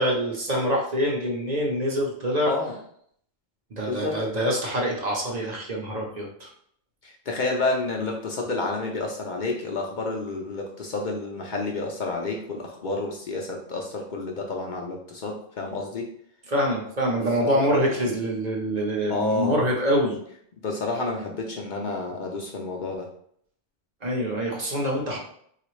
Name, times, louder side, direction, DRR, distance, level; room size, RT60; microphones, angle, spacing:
voice 1, 0.0-2.5 3.8-6.5 16.5-20.2 24.0-25.2, equal, 45° right, -1 dB, 0.8 m, -25 dB
voice 2, 3.9-4.2 7.0-16.1 17.4-17.6 18.0-18.1 19.1-19.7 20.6-23.1, left 3 dB, 60° left, 0 dB, 0.6 m, -29 dB
3.7 x 2.4 x 3.1 m, 0.66 s
omnidirectional pair, 1.1 m